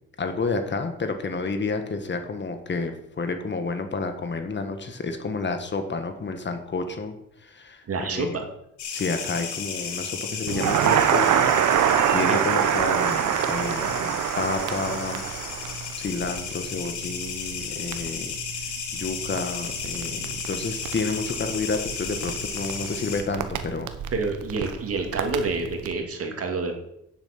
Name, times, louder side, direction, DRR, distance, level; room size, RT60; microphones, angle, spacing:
voice 1, 0.2-7.1 7.4-7.8 8.1-8.4 8.9-15.2 16.0-18.3 18.9-23.9, left 3 dB, 40° left, 7 dB, 1.5 m, -30 dB
voice 2, 7.9-8.5 12.2-12.4 24.1-26.7, right 3 dB, 50° right, 4 dB, 2.3 m, -28 dB
sound 1, 8.8-23.2, left 6 dB, 75° left, 2.1 m, -34 dB
Crackle, 10.5-25.9, right 9 dB, 75° right, 1.2 m, -26 dB
10.0 x 7.5 x 5.9 m, 0.77 s
cardioid pair, 90°, 30 cm